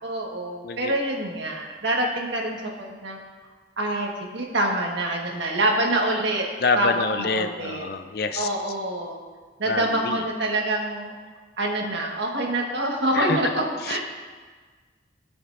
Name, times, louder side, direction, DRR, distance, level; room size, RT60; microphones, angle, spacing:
voice 1, 0.0-3.2 3.8-6.4 6.7-6.9 7.2-7.9 8.4-9.2 9.6-11.2 11.6-14.0, right 1 dB, 85° right, 0 dB, 1.5 m, -26 dB
voice 2, 6.6-8.5 9.7-10.2 13.1-13.4 13.8-14.0, left 4 dB, 60° left, 9 dB, 0.5 m, -26 dB
16.5 x 6.1 x 2.6 m, 1.4 s
head